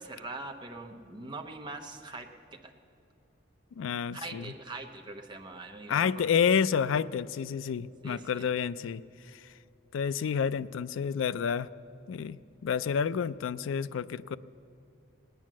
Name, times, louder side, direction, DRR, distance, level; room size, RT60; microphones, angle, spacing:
voice 1, 0.0-2.3 2.6-2.7 4.1-6.3 8.0-8.5, right 2 dB, 25° right, 3 dB, 0.8 m, -42 dB
voice 2, 3.8-4.5 5.9-9.0 9.3-9.5 9.9-11.7 12.1-14.4, left 7 dB, 80° left, 15 dB, 0.3 m, -29 dB
19.0 x 9.2 x 7.4 m, 2.7 s
head